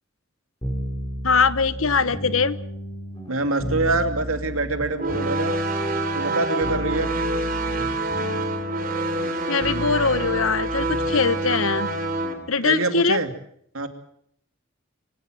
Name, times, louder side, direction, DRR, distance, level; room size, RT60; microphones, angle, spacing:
sound 1, 0.6-12.5, equal, 20° left, 5.7 m, -33 dB
voice 1, 1.2-2.6 9.5-11.9 12.5-13.2, left 5 dB, 80° left, 15 dB, 1.1 m, -22 dB
voice 2, 3.3-5.6 6.1-7.1 12.6-13.3 13.7-13.9, right 3 dB, 90° right, 7 dB, 2.6 m, -25 dB
sound 2, 5.0-12.3, right 2 dB, 45° right, 3.3 m, -27 dB
25.0 x 17.0 x 7.6 m, 0.67 s
head